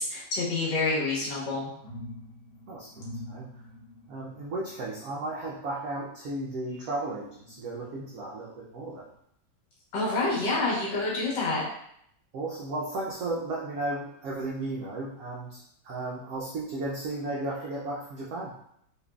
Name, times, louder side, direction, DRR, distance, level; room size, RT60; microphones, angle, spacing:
voice 1, 0.0-1.7 9.9-11.6, left 3 dB, 65° left, -5 dB, 1.6 m, -27 dB
sound 1, 1.1-6.9 7.3-8.5 8.9-9.1, left 1 dB, 5° left, 1.1 m, -47 dB
voice 2, 4.1-9.1 12.3-18.5, right 2 dB, 75° right, -4 dB, 0.8 m, -34 dB
4.1 x 3.0 x 2.3 m, 0.72 s
omnidirectional pair, 2.1 m